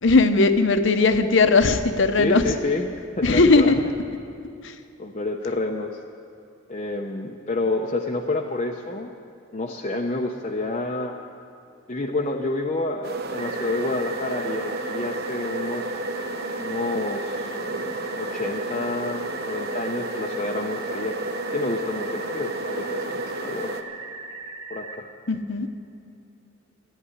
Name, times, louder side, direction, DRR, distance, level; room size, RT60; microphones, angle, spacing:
voice 1, 0.0-2.4 3.2-3.8 4.6-4.8 25.3-25.7, left 3 dB, 60° left, 8 dB, 0.9 m, -18 dB
voice 2, 2.2-3.7 5.0-6.0 6.7-9.1 9.5-11.1 11.9-15.9 16.6-21.1 21.5-23.7 24.7-25.1, left 2 dB, 30° left, 0 dB, 0.7 m, -29 dB
sound 1, 13.0-23.8, right 2 dB, 45° right, 0.9 m, -31 dB
sound 2, 13.4-25.0, right 3 dB, 85° right, 1.4 m, -39 dB
14.0 x 9.2 x 9.8 m, 2.6 s
head